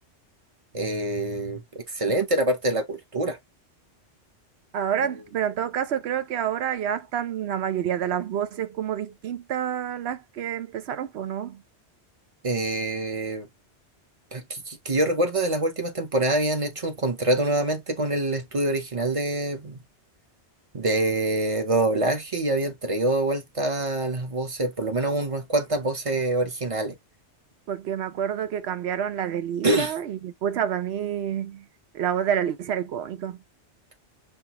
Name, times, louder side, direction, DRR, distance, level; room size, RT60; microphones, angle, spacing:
voice 1, 0.7-3.4 12.4-13.5 14.3-19.8 20.7-26.9 29.6-29.9, right 2 dB, 30° right, 0.8 m, -25 dB
voice 2, 4.7-11.6 27.7-31.6 31.9-33.4, right 9 dB, 70° right, 0.8 m, -28 dB
5.4 x 2.2 x 2.9 m
omnidirectional pair, 1.2 m